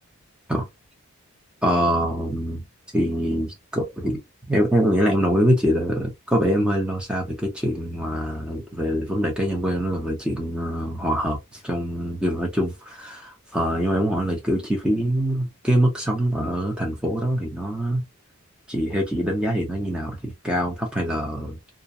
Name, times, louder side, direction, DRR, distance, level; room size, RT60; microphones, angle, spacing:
voice 1, 1.6-2.6 2.9-4.2 4.5-18.0 18.7-21.6, equal, 5° right, 0.6 m, -24 dB
2.4 x 2.2 x 2.6 m
head